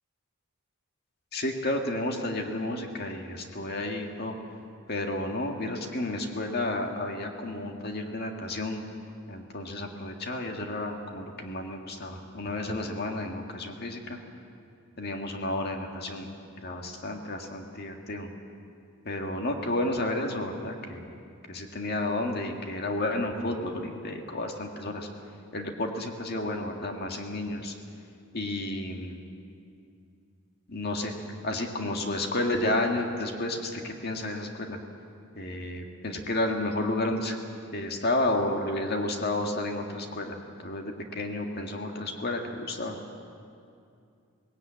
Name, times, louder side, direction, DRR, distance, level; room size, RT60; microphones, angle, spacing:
voice 1, 1.3-4.4 4.9-8.8 9.3-14.2 15.0-16.3 16.6-18.3 19.1-21.1 21.5-25.1 25.5-27.7 28.3-29.2 30.7-31.1 31.4-34.8 35.4-37.3 37.7-43.0, left 1 dB, 45° left, 3 dB, 1.9 m, -31 dB
19.0 x 17.0 x 8.7 m, 2.5 s
head